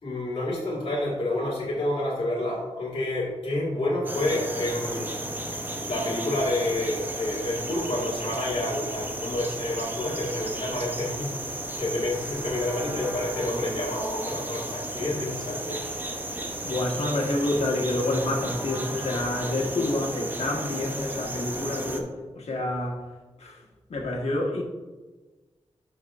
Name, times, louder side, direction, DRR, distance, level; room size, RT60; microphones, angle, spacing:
voice 1, 0.0-5.2 5.5-5.6 5.9-15.8, left 1 dB, 50° left, -7 dB, 1.9 m, -29 dB
sound 1, 4.1-22.0, right 1 dB, 15° right, 0.7 m, -34 dB
voice 2, 16.6-23.1 23.4-23.6 23.9-24.6, left 1 dB, 75° left, -1 dB, 1.3 m, -28 dB
11.5 x 4.8 x 2.4 m, 1.3 s
wide cardioid pair, 125°, 11 cm